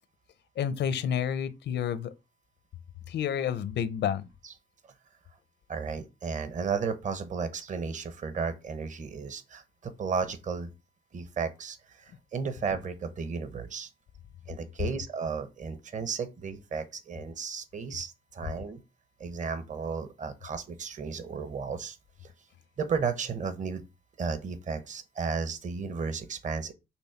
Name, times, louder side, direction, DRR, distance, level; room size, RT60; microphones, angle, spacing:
voice 1, 0.6-2.1 3.1-4.3, left 8 dB, 90° left, 0.7 m, -29 dB
voice 2, 5.7-10.7 11.1-13.9 14.5-18.8 19.2-22.0 22.2-22.3 22.8-23.8 24.2-26.7, right 5 dB, 45° right, 1.0 m, -34 dB
6.1 x 3.5 x 5.9 m
wide cardioid pair, 150°, 18 cm